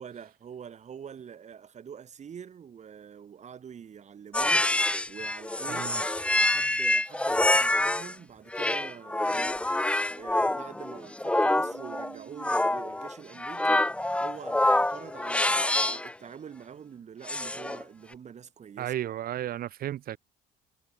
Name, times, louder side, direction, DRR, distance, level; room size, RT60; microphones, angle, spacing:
voice 1, 0.0-5.9 6.4-9.7 10.1-13.9 14.2-18.9, right 7 dB, 45° right, 5.3 m, -45 dB
sound 1, 4.3-8.1 8.5-16.1 17.3-17.8, left 1 dB, 5° left, 0.8 m, -26 dB
voice 2, 5.7-6.0 11.5-12.4 18.8-20.2, right 12 dB, 60° right, 2.4 m, -35 dB
cardioid pair, 110°, 17 cm